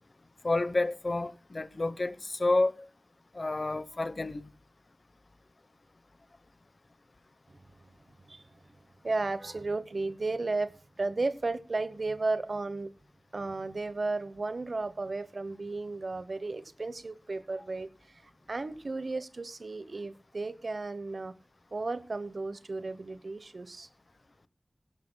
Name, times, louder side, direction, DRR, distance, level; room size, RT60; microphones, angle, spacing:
voice 1, 0.4-2.8 3.3-4.5, left 2 dB, 55° left, 0.9 m, -29 dB
voice 2, 9.0-12.9 13.3-21.4 21.7-23.9, right 3 dB, 70° right, 1.0 m, -34 dB
18.0 x 16.5 x 2.2 m
wide cardioid pair, 50°, 0 cm